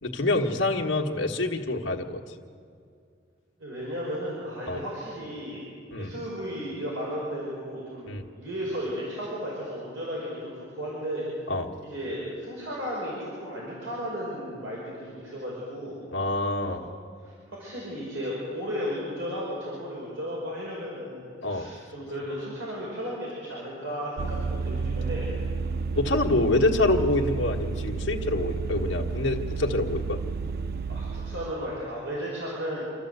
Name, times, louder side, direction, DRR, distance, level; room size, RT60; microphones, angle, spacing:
voice 1, 0.0-2.2 4.7-4.8 5.9-6.1 8.1-8.2 11.5-11.7 16.1-16.8 21.4-21.7 25.9-30.2, left 2 dB, 80° left, 1 dB, 1.5 m, -26 dB
voice 2, 3.6-5.6 6.0-8.1 8.4-11.4 11.8-16.0 16.7-16.8 17.2-25.3 30.9-32.9, equal, 85° right, -6 dB, 5.4 m, -34 dB
Vehicle, 24.2-31.5, right 4 dB, 55° right, 0.5 m, -31 dB
26.5 x 13.0 x 8.1 m, 2.4 s
head